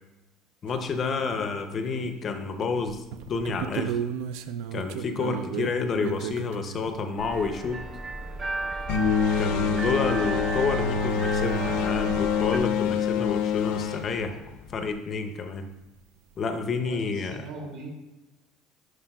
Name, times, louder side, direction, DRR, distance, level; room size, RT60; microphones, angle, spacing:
voice 1, 0.6-4.0 4.7-7.8 9.4-14.4 14.7-15.7 16.4-17.4, left 4 dB, 30° left, 7 dB, 0.5 m, -29 dB
sound 1, 0.7-0.8 1.2-2.2 2.6-6.9 9.6-9.7 9.8-9.9 11.0-11.1 11.6-11.7 15.3-15.4 15.6-16.0, right 9 dB, 85° right, 0.4 m, -35 dB
sound 2, 7.2-12.6, right 3 dB, 25° right, 0.5 m, -34 dB
sound 3, 8.9-14.9, left 6 dB, 85° left, 0.5 m, -26 dB
voice 2, 16.9-17.9, right 3 dB, 65° right, -1 dB, 2.2 m, -40 dB
11.0 x 4.8 x 2.2 m, 1.0 s
cardioid pair, 170°, 0 cm